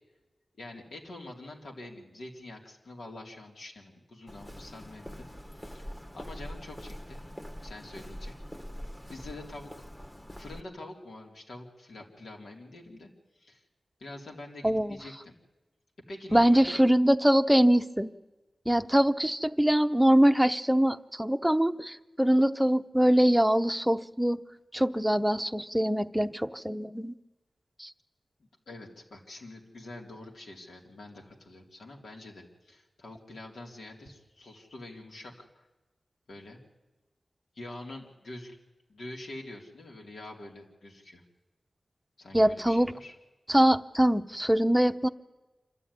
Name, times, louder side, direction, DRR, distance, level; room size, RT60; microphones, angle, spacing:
voice 1, 0.6-5.3 5.5-5.9 6.1-7.2 7.6-8.4 9.1-9.9 10.4-13.1 13.4-13.6 14.0-15.4 16.1-16.8 28.7-35.7 36.3-36.6 37.5-38.6 38.9-41.2 42.2-43.1 43.6-43.7, left 2 dB, 90° left, 0 dB, 3.1 m, -45 dB
Walk footsteps, 4.3-10.6, equal, 20° left, 1.5 m, -43 dB
voice 2, 14.6-15.0 16.3-18.1 18.7-24.4 24.7-27.1 27.8-27.9 42.3-42.9 43.5-45.1, equal, 5° right, 9 dB, 0.7 m, -23 dB
26.0 x 13.0 x 9.7 m, 1.1 s
wide cardioid pair, 80°, 0 cm